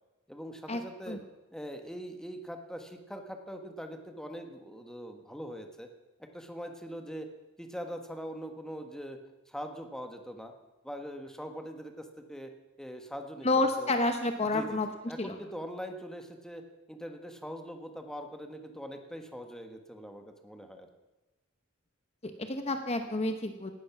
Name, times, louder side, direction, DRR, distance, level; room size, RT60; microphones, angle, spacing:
voice 1, 0.3-1.2 1.5-5.9 6.2-7.3 7.6-9.2 9.5-10.5 10.8-12.5 12.8-13.9 14.4-16.6 16.9-20.9, equal, 5° left, 5 dB, 1.4 m, -42 dB
voice 2, 13.4-14.9 15.2-15.3 22.2-23.7, left 2 dB, 30° left, 7 dB, 1.0 m, -29 dB
18.0 x 13.0 x 6.1 m, 1.1 s
head